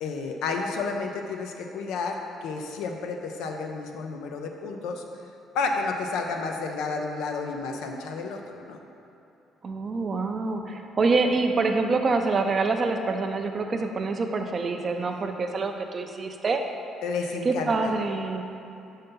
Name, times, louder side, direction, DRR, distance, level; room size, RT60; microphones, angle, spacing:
voice 1, 0.0-5.0 5.5-8.8 17.0-17.9, left 4 dB, 85° left, 3 dB, 0.6 m, -31 dB
voice 2, 9.6-16.6 17.4-18.4, right 3 dB, 30° right, 5 dB, 0.5 m, -26 dB
5.6 x 5.5 x 5.3 m, 2.9 s
cardioid pair, 160°, 0 cm